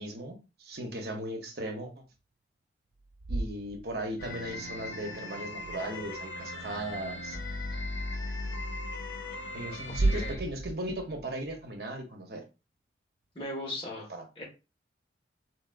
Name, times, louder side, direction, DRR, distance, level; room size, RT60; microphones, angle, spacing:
voice 1, 0.0-1.9 3.3-7.4 9.5-12.4 14.1-14.3, right 1 dB, 55° right, 0.9 m, -37 dB
sound 1, 3.0-4.4 5.5-6.2 8.4-8.5 9.8-11.8, right 2 dB, 40° right, 0.3 m, -34 dB
sound 2, 4.2-10.4, left 2 dB, 90° left, 0.9 m, -38 dB
voice 2, 13.3-14.1 14.4-14.5, left 1 dB, 30° left, 1.6 m, -37 dB
4.1 x 3.4 x 2.5 m
head